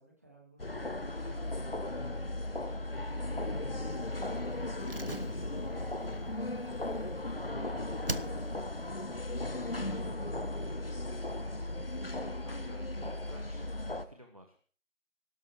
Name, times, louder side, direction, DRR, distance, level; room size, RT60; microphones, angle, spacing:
voice 1, 0.0-1.0 3.3-7.4 7.7-8.9 10.1-12.3, right 1 dB, 10° right, -2 dB, 2.1 m, -57 dB
sound 1, 0.6-14.1, left 2 dB, 45° left, 1.2 m, -36 dB
voice 2, 1.2-2.7 7.5-7.8 9.8-10.1 12.4-14.6, equal, 25° right, 5 dB, 1.2 m, -55 dB
Slam, 4.8-7.6 8.0-8.8 9.1-9.2, right 2 dB, 45° right, 0.6 m, -42 dB
15.5 x 12.5 x 4.7 m, 0.42 s
figure-of-eight pair, 175°, 39 cm